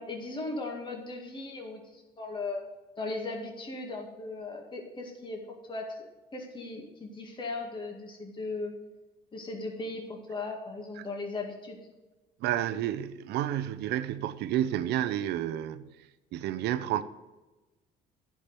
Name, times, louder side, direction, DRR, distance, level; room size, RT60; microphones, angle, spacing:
voice 1, 0.0-2.6 3.0-5.4 5.7-6.1 6.3-8.7 9.3-11.8, left 3 dB, 30° left, 2.1 m, -37 dB
voice 2, 12.4-15.9 16.3-17.0, right 12 dB, 80° right, 0.7 m, -30 dB
10.0 x 6.0 x 6.8 m
cardioid pair, 110°, 17 cm